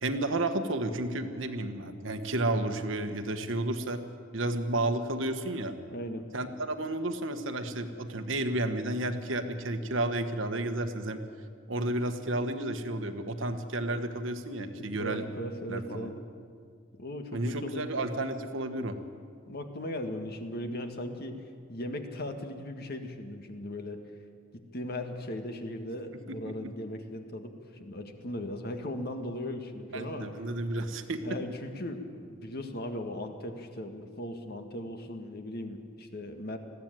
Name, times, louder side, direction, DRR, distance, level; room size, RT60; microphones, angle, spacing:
voice 1, 0.0-4.0 4.3-5.7 6.3-11.2 11.7-15.3 15.7-16.1 17.3-19.0 26.3-26.7 29.9-31.2, right 2 dB, 70° right, 7 dB, 1.4 m, -32 dB
voice 2, 5.9-6.3 15.0-16.2 17.0-18.0 19.5-21.4 21.7-24.0 24.5-30.3 31.2-36.6, left 1 dB, 50° left, 6 dB, 1.7 m, -38 dB
20.0 x 15.0 x 9.1 m, 2.2 s
head